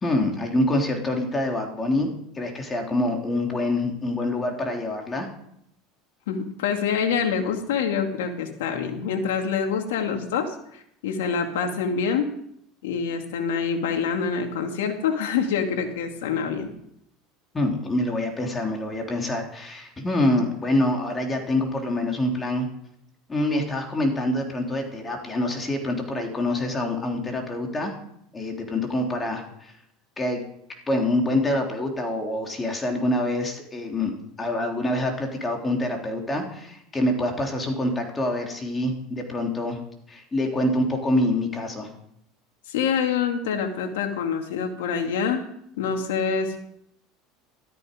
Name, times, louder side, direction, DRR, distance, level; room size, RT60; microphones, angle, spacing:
voice 1, 0.0-5.3 17.5-22.7 23.3-27.9 28.3-29.7 30.2-30.4 30.9-39.8 40.1-41.9, left 1 dB, 20° left, 2 dB, 3.2 m, -26 dB
voice 2, 6.3-12.3 12.8-16.7 42.7-45.4 45.8-46.6, left 6 dB, 90° left, 4 dB, 2.4 m, -26 dB
14.0 x 13.0 x 5.2 m, 0.73 s
supercardioid pair, 115°, 0 cm